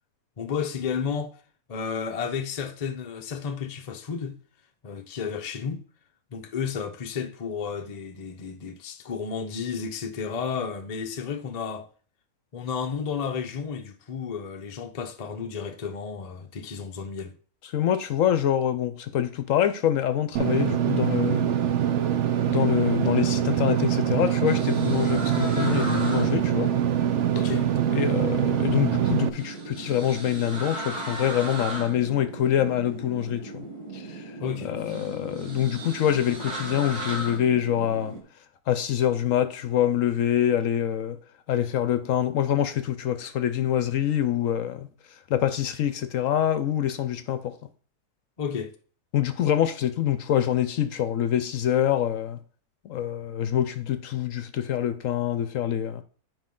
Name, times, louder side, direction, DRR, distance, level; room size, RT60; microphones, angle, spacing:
voice 1, 0.4-1.3 1.7-4.4 4.8-5.8 6.3-11.9 12.5-17.4 27.3-27.7 34.4-34.7 48.4-48.7, left 6 dB, 40° left, 0.6 m, -32 dB
voice 2, 17.6-21.5 22.5-26.7 27.9-33.7 33.9-34.3 34.6-38.1 38.7-41.2 41.5-44.9 45.3-47.6 49.1-52.4 52.8-56.0, left 10 dB, 65° left, 0.9 m, -25 dB
Engine / Mechanisms, 20.4-29.3, right 10 dB, 60° right, 0.9 m, -24 dB
sound 1, 24.4-38.2, right 2 dB, 90° right, 2.7 m, -37 dB
9.5 x 5.0 x 3.8 m
omnidirectional pair, 1.6 m